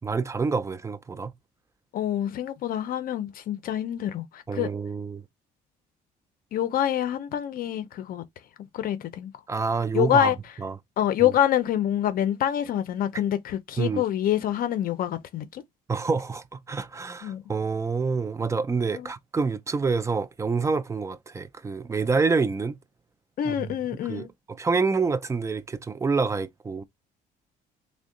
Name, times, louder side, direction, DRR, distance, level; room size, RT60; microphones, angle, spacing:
voice 1, 0.0-1.3 4.5-5.2 9.5-10.8 11.2-11.3 13.8-14.0 15.9-22.8 23.4-23.8 24.0-26.8, right 4 dB, 15° right, 0.4 m, -27 dB
voice 2, 1.9-4.7 6.5-8.2 8.7-9.3 9.9-10.4 11.0-15.6 17.2-17.4 18.9-19.1 23.4-24.3, left 11 dB, 60° left, 0.6 m, -26 dB
3.6 x 2.1 x 3.6 m
cardioid pair, 110°, 17 cm